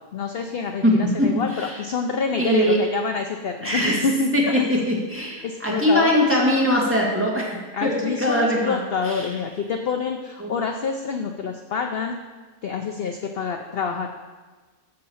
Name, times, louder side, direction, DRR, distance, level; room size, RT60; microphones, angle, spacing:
voice 1, 0.1-4.7 5.4-6.1 7.7-12.2 12.6-14.1, left 5 dB, 55° left, 4 dB, 0.7 m, -27 dB
voice 2, 2.4-2.8 3.6-4.0 4.3-4.4 4.7-8.8 9.0-9.3 10.4-10.5, equal, 10° right, -4 dB, 2.0 m, -21 dB
7.8 x 6.6 x 7.1 m, 1.3 s
omnidirectional pair, 1.6 m